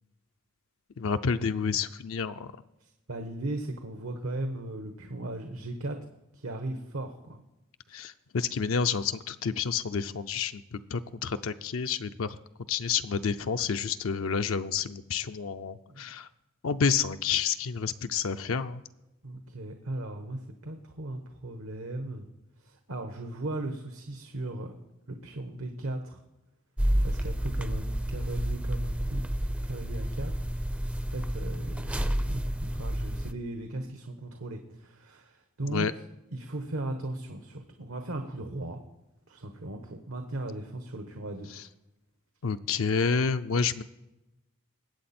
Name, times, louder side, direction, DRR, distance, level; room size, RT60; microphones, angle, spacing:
voice 1, 1.0-2.5 7.9-12.4 12.7-16.3 16.6-18.8 35.7-35.9 42.4-43.8, left 6 dB, 70° left, 9 dB, 0.5 m, -29 dB
voice 2, 2.8-6.0 6.3-7.4 15.9-16.1 19.2-22.3 22.6-24.8 25.1-26.2 27.0-29.2 29.6-30.3 31.1-35.9 36.3-38.8 39.3-41.7, right 1 dB, 80° right, 5 dB, 1.2 m, -37 dB
sound 1, 26.8-33.3, equal, 5° right, 0.4 m, -30 dB
20.5 x 8.4 x 4.3 m, 0.97 s
head